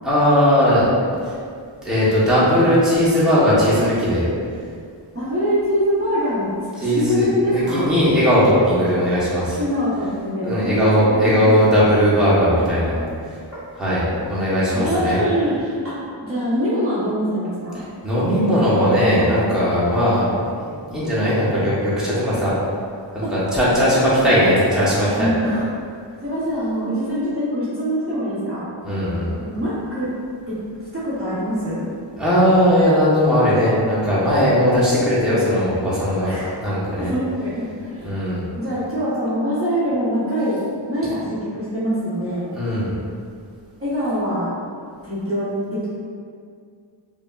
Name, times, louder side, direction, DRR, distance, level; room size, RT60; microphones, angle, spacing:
voice 1, 0.0-0.9 1.3-1.4 1.8-4.3 6.8-9.6 10.4-13.0 13.8-15.2 18.0-22.5 23.1-25.3 28.8-29.4 32.2-36.3 36.6-37.1 38.0-38.4 42.5-42.9, equal, ahead, -10 dB, 1.1 m, -18 dB
voice 2, 5.1-6.5 6.8-7.9 9.6-11.5 14.7-15.9 16.2-17.8 23.2-23.3 23.7-24.4 25.2-25.7 26.2-28.7 29.4-30.1 30.5-30.6 30.9-31.8 36.2-36.5 37.0-38.2 38.6-40.6 40.9-42.5 43.8-44.5 45.0-45.9, equal, 30° right, -11 dB, 1.0 m, -24 dB
4.9 x 2.8 x 2.4 m, 2.2 s
wide cardioid pair, 90°, 46 cm